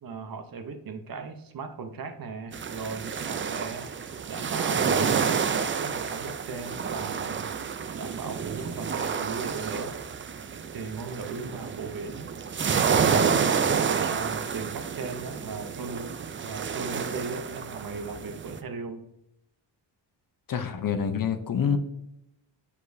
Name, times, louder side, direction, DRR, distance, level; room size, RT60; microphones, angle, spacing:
voice 1, 0.0-3.9 4.3-7.6 7.9-10.0 10.7-12.3 12.6-13.5 13.8-16.1 16.4-19.0, right 4 dB, 50° right, 7 dB, 0.8 m, -37 dB
sound 1, 2.5-18.6, right 6 dB, 30° right, 0.4 m, -29 dB
voice 2, 20.5-21.8, left 7 dB, 45° left, 9 dB, 0.7 m, -27 dB
8.4 x 4.8 x 2.7 m, 0.83 s
cardioid pair, 100°, 45 cm